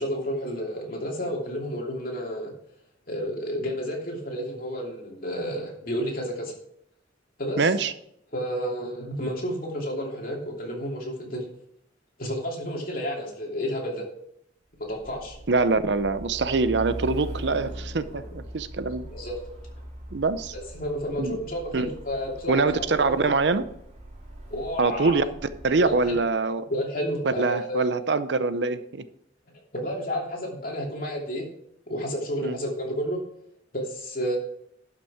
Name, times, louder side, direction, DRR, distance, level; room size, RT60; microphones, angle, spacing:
voice 1, 0.0-2.5 3.1-6.5 7.4-7.6 8.3-11.4 12.2-14.1 14.8-15.4 18.1-18.2 19.1-19.4 20.5-23.2 24.5-25.2 25.8-26.2 26.7-27.9 29.7-31.5 31.9-33.2 33.7-34.4, equal, 50° left, -1 dB, 2.8 m, -31 dB
voice 2, 7.6-7.9 15.5-19.1 20.1-20.5 21.2-21.4 21.7-21.9 22.5-23.6 24.8-25.2 25.6-26.7 27.3-29.1 32.4-32.6, right 3 dB, 65° right, 13 dB, 0.6 m, -24 dB
Truck, 14.9-26.3, right 1 dB, 35° right, 3.0 m, -41 dB
11.5 x 6.0 x 4.8 m, 0.73 s
head